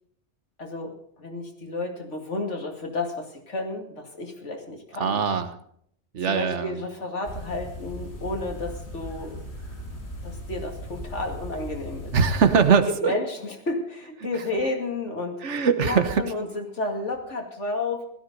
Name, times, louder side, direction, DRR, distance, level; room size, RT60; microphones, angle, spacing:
voice 1, 0.6-5.2 6.3-9.4 10.2-12.2 13.0-15.4 15.8-18.1, left 2 dB, 85° left, 3 dB, 2.8 m, -31 dB
voice 2, 5.0-5.5 6.1-6.7 12.1-13.1 15.4-16.2, right 6 dB, 85° right, 10 dB, 1.5 m, -21 dB
sound 1, 7.2-12.7, equal, 65° left, 3.6 m, -38 dB
16.0 x 13.0 x 5.3 m, 0.67 s
omnidirectional pair, 1.2 m